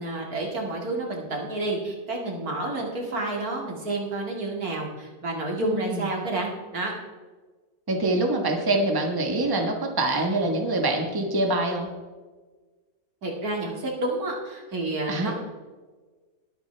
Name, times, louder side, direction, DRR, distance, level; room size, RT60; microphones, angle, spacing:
voice 1, 0.0-6.9 8.1-8.2 13.2-15.3, right 2 dB, 65° right, -1 dB, 2.7 m, -30 dB
voice 2, 5.6-6.1 7.9-11.9 15.1-15.3, right 2 dB, 15° right, 2 dB, 1.4 m, -25 dB
21.0 x 8.7 x 3.4 m, 1.3 s
omnidirectional pair, 1.7 m